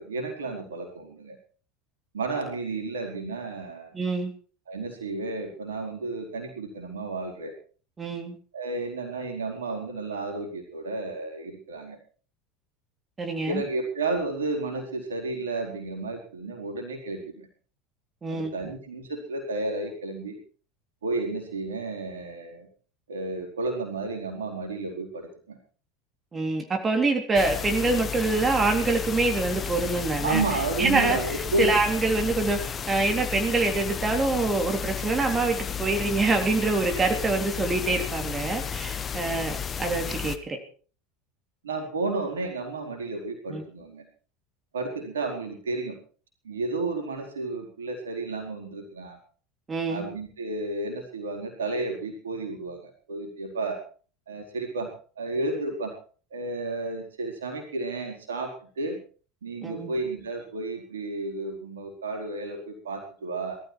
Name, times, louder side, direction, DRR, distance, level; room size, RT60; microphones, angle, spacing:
voice 1, 0.0-1.4 2.1-3.9 4.7-7.5 8.5-12.0 13.5-17.5 18.3-20.4 21.0-22.7 23.1-25.6 30.2-31.7 41.6-44.0 44.7-46.0 46.4-49.2 49.9-53.8 54.3-55.9 56.3-59.0 59.4-63.6, right 3 dB, 70° right, 2 dB, 4.3 m, -32 dB
voice 2, 3.9-4.3 8.0-8.4 13.2-13.6 18.2-18.5 26.3-30.4 30.8-31.2 31.6-40.6 43.5-43.6 49.7-50.1 59.6-59.9, right 3 dB, 20° right, 3 dB, 3.4 m, -25 dB
sound 1, 27.3-40.4, left 7 dB, 30° left, 1.4 m, -33 dB
19.0 x 13.5 x 4.7 m, 0.41 s
figure-of-eight pair, 75°, 0 cm